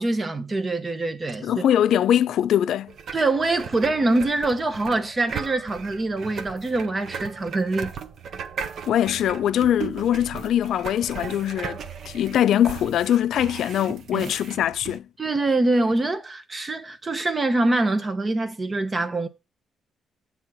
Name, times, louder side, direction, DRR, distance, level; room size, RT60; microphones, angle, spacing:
voice 1, 0.0-1.5 3.1-7.9 14.1-14.3 15.2-19.3, right 2 dB, 30° right, 0.8 m, -24 dB
voice 2, 1.4-2.9 8.9-15.1, left 10 dB, 75° left, 0.4 m, -22 dB
sound 1, 2.9-15.0, right 6 dB, 65° right, 0.7 m, -37 dB
7.3 x 3.5 x 6.0 m
cardioid pair, 90°, 0 cm